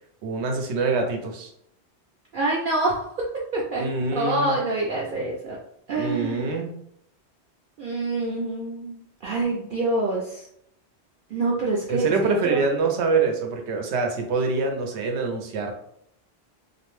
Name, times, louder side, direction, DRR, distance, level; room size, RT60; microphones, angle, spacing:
voice 1, 0.2-1.5 3.8-4.6 5.9-6.7 11.9-15.7, right 4 dB, 85° right, 3 dB, 0.9 m, -25 dB
voice 2, 2.3-5.6 5.9-6.5 7.8-10.5 11.3-12.1 12.4-12.6, right 2 dB, 60° right, -4 dB, 0.6 m, -26 dB
2.5 x 2.0 x 3.0 m, 0.72 s
omnidirectional pair, 1.1 m